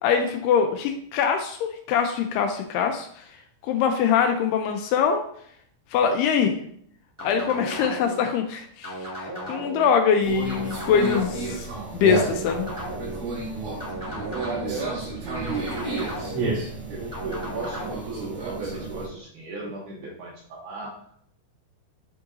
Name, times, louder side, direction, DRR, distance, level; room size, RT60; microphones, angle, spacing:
voice 1, 0.0-3.2 3.6-5.2 5.9-6.6 7.2-12.7, left 7 dB, 85° left, 5 dB, 2.4 m, -23 dB
sound 1, 7.2-8.2 8.8-9.9 10.5-11.5 12.1-13.2 13.8-14.8 15.4-16.5 17.1-17.9, equal, 15° right, 0.8 m, -35 dB
Conversation, 10.2-19.1, right 3 dB, 55° right, 3.5 m, -31 dB
voice 2, 14.3-16.2 16.9-21.0, right 3 dB, 80° right, -4 dB, 1.8 m, -35 dB
10.5 x 3.8 x 2.6 m, 0.64 s
omnidirectional pair, 5.0 m